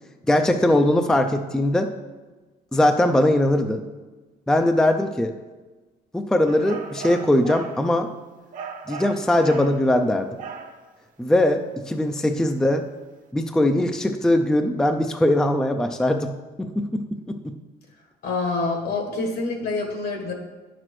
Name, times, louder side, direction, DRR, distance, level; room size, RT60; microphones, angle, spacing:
voice 1, 0.3-1.9 2.7-3.8 4.5-5.3 6.1-8.1 8.9-10.4 11.2-12.9 13.3-16.3 16.6-17.6, left 1 dB, 5° left, 6 dB, 0.4 m, -21 dB
sound 1, 6.5-7.8 8.5-9.8 10.4-10.8, right 5 dB, 50° right, 1.0 m, -37 dB
voice 2, 18.2-20.3, left 3 dB, 65° left, 2 dB, 1.6 m, -26 dB
9.9 x 6.0 x 3.1 m, 1.2 s
cardioid pair, 110°, 17 cm